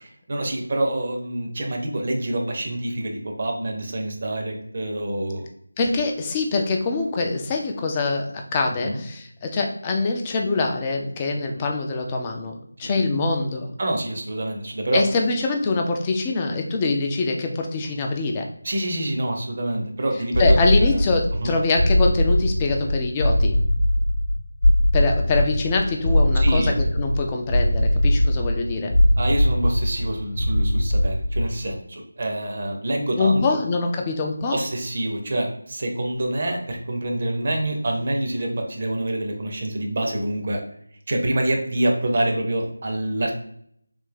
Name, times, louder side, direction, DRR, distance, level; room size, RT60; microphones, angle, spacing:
voice 1, 0.0-5.5 8.8-9.0 11.5-11.6 12.8-13.0 13.8-15.0 18.6-20.9 21.4-21.5 26.4-26.7 29.2-33.4 34.5-40.6 41.1-43.3, right 1 dB, 35° right, 2 dB, 0.7 m, -26 dB
voice 2, 5.8-13.7 14.9-18.5 20.4-23.6 24.9-28.9 33.2-34.6, left 3 dB, 15° left, 2 dB, 0.4 m, -24 dB
sound 1, 20.3-31.7, equal, 65° left, 0.7 m, -21 dB
3.3 x 2.6 x 3.6 m, 0.68 s
figure-of-eight pair, 165°, 0 cm